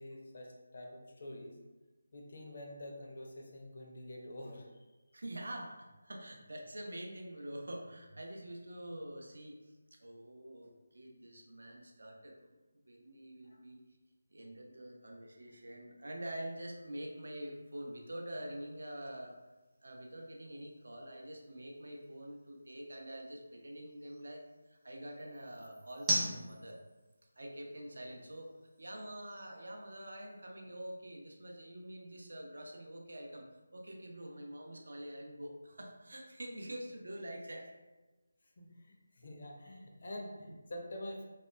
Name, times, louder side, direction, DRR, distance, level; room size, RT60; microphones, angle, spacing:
voice 1, 0.0-1.6 2.1-4.7 13.4-13.6 38.6-41.2, left 1 dB, 50° left, 0 dB, 0.5 m, -47 dB
voice 2, 5.1-9.7 10.0-12.6 12.8-13.8 14.3-19.4 19.8-24.4 24.7-26.8 27.4-33.5 33.7-37.8, right 1 dB, 65° right, 1 dB, 0.4 m, -46 dB
sound 1, 16.3-30.5, right 1 dB, 10° right, 0.5 m, -45 dB
2.8 x 2.1 x 2.2 m, 1.2 s
figure-of-eight pair, 155°, 0 cm